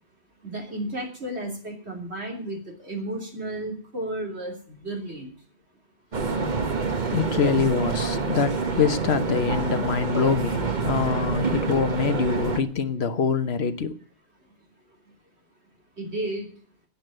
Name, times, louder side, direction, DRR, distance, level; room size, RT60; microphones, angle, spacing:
voice 1, 0.4-5.3 16.0-16.5, right 1 dB, 85° right, 1 dB, 3.6 m, -33 dB
sound 1, 6.1-12.6, right 4 dB, 45° right, 1.4 m, -27 dB
voice 2, 7.1-14.0, left 6 dB, 75° left, 10 dB, 1.3 m, -24 dB
10.0 x 8.5 x 9.1 m, 0.44 s
omnidirectional pair, 1.1 m